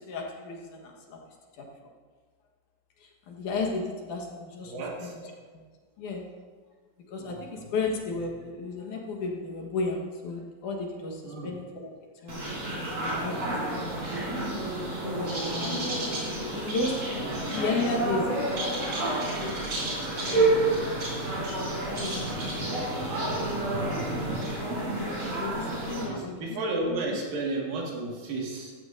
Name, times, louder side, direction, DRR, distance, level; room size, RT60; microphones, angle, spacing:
voice 1, 0.0-1.7 3.0-4.7 5.0-5.1 5.5-5.7 6.0-6.2 7.1-12.4 12.8-14.4 15.0-15.9 16.4-19.8 20.0-21.0 21.7-23.4 24.0-24.3 25.4-26.3 26.9-27.0, left 3 dB, 70° left, 0 dB, 2.8 m, -34 dB
voice 2, 4.6-5.2 7.2-7.7 11.2-11.5 14.7-14.9 17.2-17.4 26.1-28.8, right 2 dB, 90° right, -2 dB, 3.8 m, -33 dB
sound 1, 12.3-26.0, right 2 dB, 50° right, 4.8 m, -29 dB
15.0 x 14.5 x 2.7 m, 1.5 s
omnidirectional pair, 3.9 m